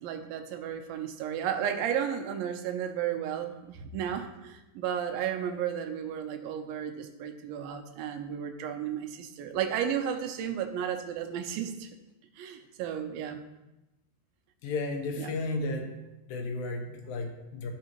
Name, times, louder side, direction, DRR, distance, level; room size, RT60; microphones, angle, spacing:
voice 1, 0.0-11.9 12.4-13.4 15.2-15.4, right 9 dB, 90° right, 5 dB, 2.5 m, -33 dB
voice 2, 14.6-15.9 16.3-17.7, left 2 dB, 80° left, 2 dB, 2.8 m, -33 dB
13.5 x 5.5 x 3.0 m, 0.97 s
omnidirectional pair, 4.1 m